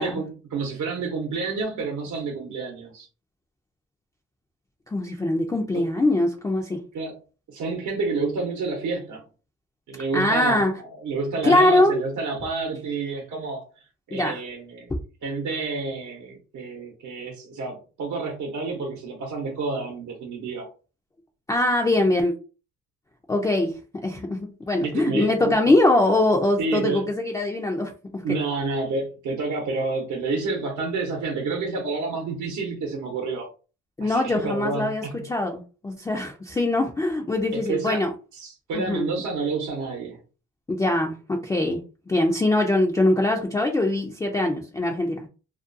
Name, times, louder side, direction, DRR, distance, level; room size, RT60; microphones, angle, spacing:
voice 1, 0.0-3.1 5.7-5.9 6.9-7.2 7.5-9.3 9.9-13.6 14.1-14.9 15.2-20.7 24.8-25.5 26.6-27.1 28.2-33.5 34.0-35.2 37.5-38.0 38.4-40.2, right 4 dB, 75° right, 0.8 m, -29 dB
voice 2, 4.9-6.8 10.1-10.7 11.4-12.0 14.1-14.4 21.5-22.3 23.3-28.2 34.0-38.1 38.7-39.1 40.7-41.8 42.1-45.3, left 2 dB, 10° left, 0.3 m, -22 dB
2.4 x 2.2 x 2.5 m
cardioid pair, 90°, 30 cm